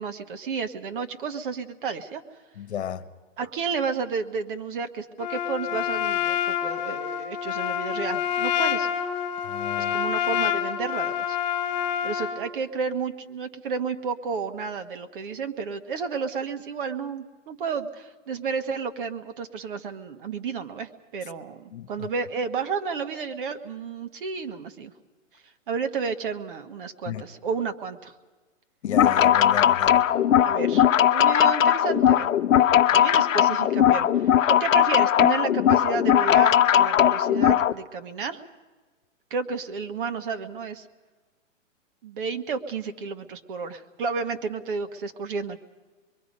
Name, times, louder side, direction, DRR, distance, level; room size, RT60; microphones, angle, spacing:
voice 1, 0.0-2.2 3.4-8.9 9.8-11.4 12.0-24.9 25.7-28.1 30.4-32.3 32.9-34.3 34.6-38.4 39.3-40.9 42.0-45.6, right 5 dB, 40° right, 8 dB, 1.5 m, -31 dB
voice 2, 2.6-3.1 9.4-10.0 21.7-22.1 27.1-27.2 28.8-30.0, left 9 dB, 55° left, 11 dB, 1.3 m, -34 dB
Trumpet, 5.2-12.4, left 9 dB, 35° left, 1.8 m, -27 dB
sound 1, 28.8-37.7, left 10 dB, 75° left, 0.9 m, -19 dB
25.5 x 23.0 x 5.3 m, 1.3 s
hypercardioid pair, 165°, 39 cm